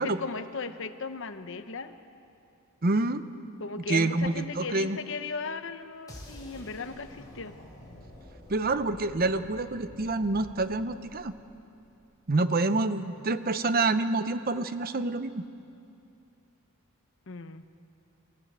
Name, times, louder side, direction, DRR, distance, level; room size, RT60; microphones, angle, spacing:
voice 1, 0.0-1.9 3.6-7.5 17.3-17.6, left 4 dB, 65° left, 9 dB, 1.0 m, -37 dB
voice 2, 2.8-3.2 3.9-5.0 8.5-11.3 12.3-15.4, right 2 dB, 45° right, 11 dB, 0.8 m, -27 dB
sound 1, 6.1-12.0, left 1 dB, 20° left, 5.3 m, -49 dB
27.0 x 15.0 x 8.1 m, 2.6 s
head